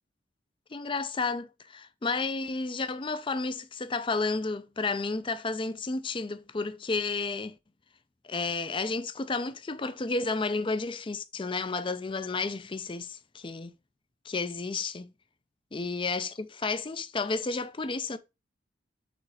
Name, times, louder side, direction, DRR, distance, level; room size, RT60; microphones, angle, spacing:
voice 1, 0.7-7.6 8.2-13.7 14.2-15.1 15.7-18.2, left 3 dB, 25° left, 0.5 m, -32 dB
5.0 x 4.1 x 4.8 m
head